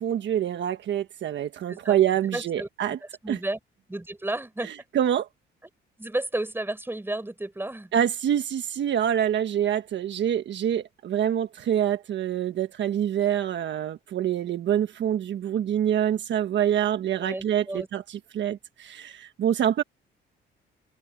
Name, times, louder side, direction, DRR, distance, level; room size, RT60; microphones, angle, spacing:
voice 1, 0.0-3.0 3.3-3.4 4.6-5.3 7.9-19.8, right 10 dB, 65° right, 1.4 m, -26 dB
voice 2, 1.7-2.0 2.3-2.7 3.2-3.6 3.9-4.7 6.0-7.9 17.2-17.9, right 1 dB, 10° right, 6.1 m, -32 dB
cardioid pair, 90°, 20 cm